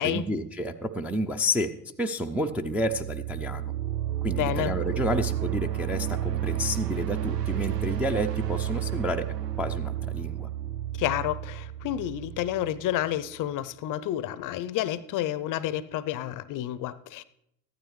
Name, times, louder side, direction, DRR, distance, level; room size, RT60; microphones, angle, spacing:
voice 1, 0.0-1.7 2.0-3.6 4.2-10.5, equal, 5° right, 2 dB, 0.4 m, -30 dB
sound 1, 2.5-13.2, right 11 dB, 85° right, 0.7 m, -31 dB
voice 2, 4.3-4.8 11.0-17.2, left 12 dB, 45° left, 17 dB, 0.6 m, -30 dB
14.5 x 12.0 x 3.2 m, 0.80 s
hypercardioid pair, 70°, 47 cm